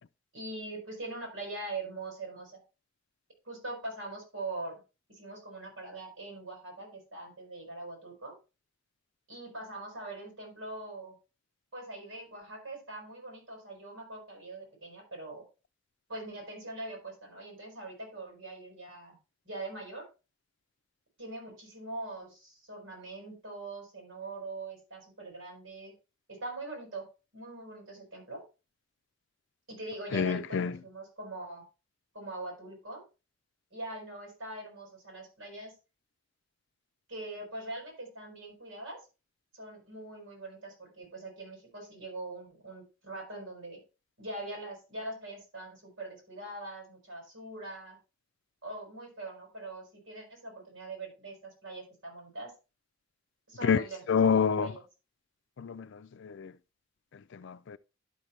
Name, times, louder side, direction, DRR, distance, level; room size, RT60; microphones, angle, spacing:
voice 1, 0.3-2.6 3.4-4.7 5.1-8.4 9.3-11.2 11.7-15.4 16.1-19.2 19.5-20.1 21.2-25.9 26.3-27.0 27.3-28.4 29.7-31.6 32.1-33.0 33.7-35.7 37.1-39.0 39.5-43.8 44.2-48.0 48.6-52.5 53.5-54.8, right 2 dB, 80° right, 5.5 m, -42 dB
voice 2, 30.1-30.8 53.6-54.7 55.6-56.5 57.1-57.8, left 6 dB, 65° left, 0.4 m, -28 dB
11.5 x 5.9 x 3.3 m
head